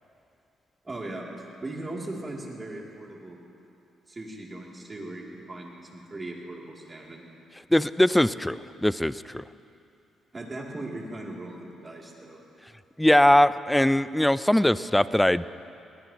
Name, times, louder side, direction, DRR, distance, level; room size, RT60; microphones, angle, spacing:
voice 1, 0.8-3.4 4.1-7.2 10.3-12.4, right 2 dB, 25° right, -2 dB, 2.7 m, -38 dB
voice 2, 7.7-9.4 13.0-15.5, left 1 dB, 5° left, 16 dB, 0.4 m, -21 dB
21.5 x 18.5 x 3.0 m, 2.7 s
cardioid pair, 90°, 0 cm